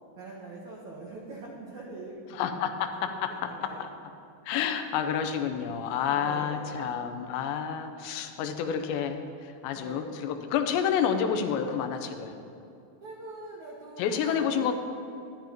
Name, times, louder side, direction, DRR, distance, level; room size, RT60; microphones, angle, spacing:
voice 1, 0.2-2.6 3.0-3.9 6.1-7.6 9.7-10.3 13.0-14.7, right 2 dB, 75° right, -5 dB, 1.7 m, -44 dB
voice 2, 2.3-3.5 3.8-3.9 4.5-12.3 14.0-14.7, left 7 dB, 85° left, 6 dB, 2.9 m, -29 dB
11.5 x 11.5 x 2.9 m, 2.7 s
omnidirectional pair, 5.0 m